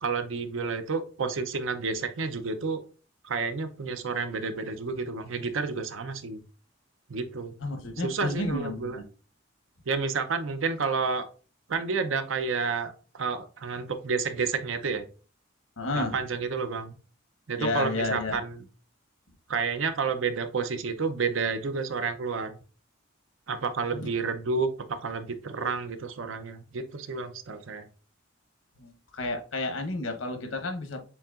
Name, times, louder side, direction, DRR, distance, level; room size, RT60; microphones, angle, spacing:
voice 1, 0.0-2.8 3.2-6.4 7.1-7.6 8.0-9.0 9.9-11.3 11.7-15.0 15.9-17.0 17.5-18.6 19.5-22.6 23.5-27.9, right 4 dB, 85° right, 9 dB, 0.6 m, -30 dB
voice 2, 7.6-9.0 15.8-16.2 17.6-18.4 23.9-24.1 28.8-31.0, left 2 dB, 85° left, 5 dB, 1.0 m, -31 dB
7.0 x 2.9 x 2.4 m, 0.37 s
head